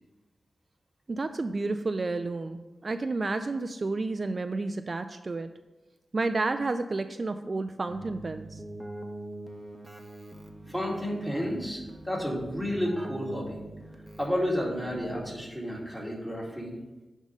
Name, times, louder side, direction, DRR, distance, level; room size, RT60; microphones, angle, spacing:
voice 1, 1.1-5.5 6.1-8.6, right 3 dB, 45° right, 9 dB, 0.3 m, -31 dB
Keyboard (musical), 7.9-15.7, right 1 dB, 15° right, 0.9 m, -43 dB
voice 2, 10.7-13.6 14.2-16.7, equal, 10° left, -4 dB, 2.4 m, -31 dB
10.0 x 3.6 x 5.3 m, 1.1 s
wide cardioid pair, 85°, 0 cm